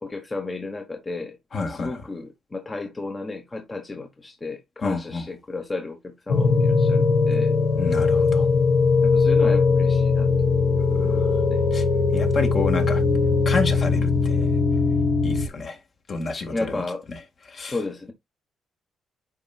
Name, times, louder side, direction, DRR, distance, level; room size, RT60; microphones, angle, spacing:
voice 1, 0.0-7.5 9.0-10.3 11.0-11.6 16.5-17.0 17.6-18.1, left 3 dB, 25° left, 1.2 m, -33 dB
voice 2, 1.5-2.0 4.8-5.2 7.8-8.5 11.1-11.3 11.7-11.8 12.1-13.0 13.5-14.5 15.2-15.8 16.1-16.8 17.5-17.8, left 4 dB, 45° left, 2.0 m, -29 dB
sound 1, 6.3-15.5, left 4 dB, 75° left, 1.3 m, -20 dB
9.9 x 4.5 x 2.4 m
cardioid pair, 90°, 0 cm